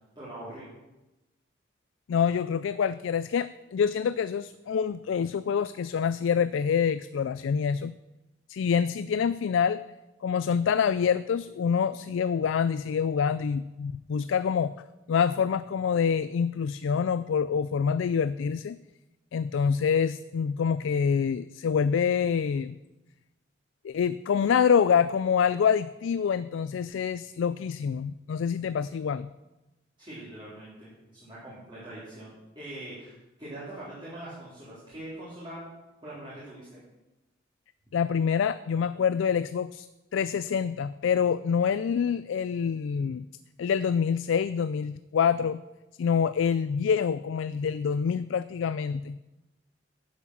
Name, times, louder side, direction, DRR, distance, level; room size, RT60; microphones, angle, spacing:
voice 1, 0.2-0.6 30.0-35.7 36.0-36.7, right 1 dB, 25° right, -9 dB, 3.5 m, -42 dB
voice 2, 2.1-7.9 8.5-9.8 10.2-14.7 15.1-18.8 19.3-22.8 23.8-29.3 37.9-39.9 40.1-43.3 43.6-45.6 46.0-49.2, left 7 dB, 75° left, 15 dB, 0.3 m, -26 dB
11.5 x 7.3 x 6.2 m, 1.0 s
head